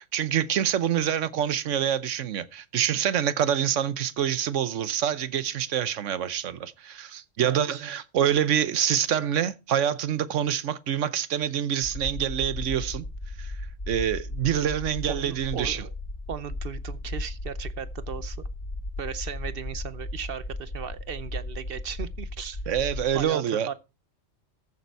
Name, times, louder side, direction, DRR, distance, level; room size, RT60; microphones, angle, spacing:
voice 1, 0.0-13.1 13.4-13.5 13.9-15.8 22.7-23.7, right 9 dB, 75° right, 1.1 m, -26 dB
voice 2, 7.4-7.9 15.1-15.9 16.3-18.4 19.0-22.6 23.1-23.7, right 7 dB, 55° right, 0.9 m, -36 dB
sound 1, 11.8-23.2, left 2 dB, 45° left, 2.6 m, -36 dB
14.5 x 6.8 x 4.6 m
omnidirectional pair, 1.3 m